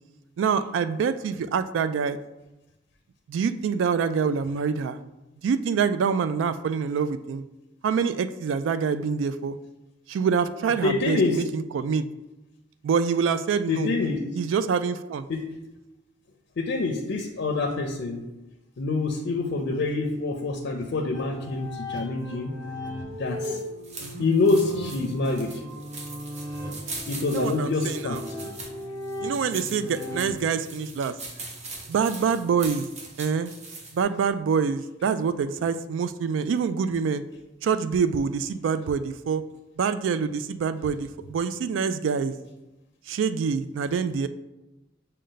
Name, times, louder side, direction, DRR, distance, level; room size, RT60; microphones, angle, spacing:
voice 1, 0.4-2.2 3.3-5.0 5.4-7.4 7.8-9.6 10.1-12.0 12.8-13.9 14.3-15.3 24.0-24.3 27.3-28.2 29.2-31.1 31.9-32.9 33.2-33.5 33.9-37.2 37.6-39.4 39.8-42.3 43.1-44.3, right 6 dB, 80° right, 12 dB, 0.3 m, -26 dB
voice 2, 10.8-11.4 13.7-14.2 15.3-15.5 16.6-18.2 18.8-22.5 23.2-23.6 24.2-25.5 27.1-28.2, left 3 dB, 65° left, 2 dB, 0.5 m, -26 dB
sound 1, 21.1-30.3, left 1 dB, 20° right, 1.4 m, -37 dB
sound 2, 23.3-34.0, right 3 dB, 40° right, 0.8 m, -41 dB
6.2 x 2.2 x 3.9 m, 1.0 s
head